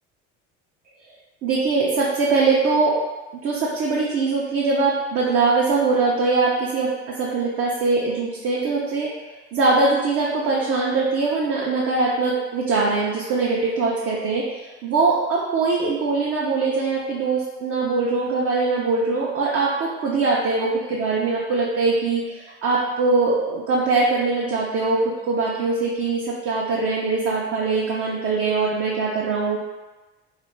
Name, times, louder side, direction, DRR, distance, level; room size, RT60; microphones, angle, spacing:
voice 1, 1.4-3.0 3.3-29.6, right 3 dB, 45° right, -5 dB, 0.5 m, -22 dB
2.4 x 2.1 x 3.0 m, 1.2 s
supercardioid pair, 80°, 33 cm